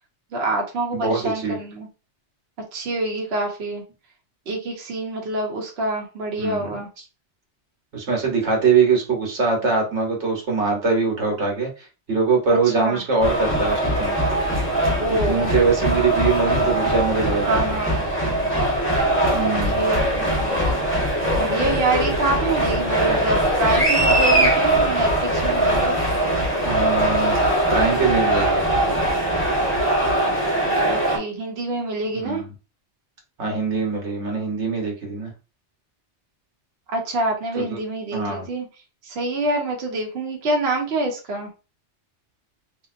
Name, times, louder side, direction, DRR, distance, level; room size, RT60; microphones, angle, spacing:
voice 1, 0.3-1.9 2.7-3.8 4.5-6.9 12.7-13.0 15.0-15.5 17.5-18.0 19.4-20.7 21.4-26.0 30.8-32.4 36.9-38.7 39.0-41.5, right 2 dB, 60° right, 0 dB, 1.0 m, -26 dB
voice 2, 0.9-1.6 6.4-6.8 7.9-14.2 15.2-17.6 19.3-19.9 26.6-27.3 27.7-28.9 32.1-32.5 33.4-35.3 37.5-37.8 38.1-38.5, right 4 dB, 85° right, 0 dB, 1.4 m, -22 dB
sound 1, 13.2-31.2, right 1 dB, 10° left, 1.0 m, -21 dB
3.4 x 2.8 x 2.5 m, 0.32 s
omnidirectional pair, 1.2 m